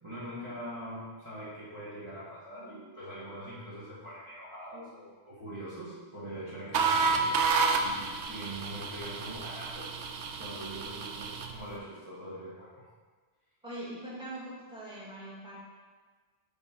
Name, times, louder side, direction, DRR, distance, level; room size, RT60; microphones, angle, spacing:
voice 1, 0.0-7.4 7.8-9.9 10.4-12.8, right 1 dB, 25° right, -11 dB, 1.7 m, -43 dB
sound 1, 6.7-11.6, right 4 dB, 80° right, 0.9 m, -30 dB
voice 2, 13.6-15.6, right 1 dB, 5° right, -8 dB, 1.9 m, -42 dB
8.2 x 3.8 x 4.5 m, 1.5 s
omnidirectional pair, 1.2 m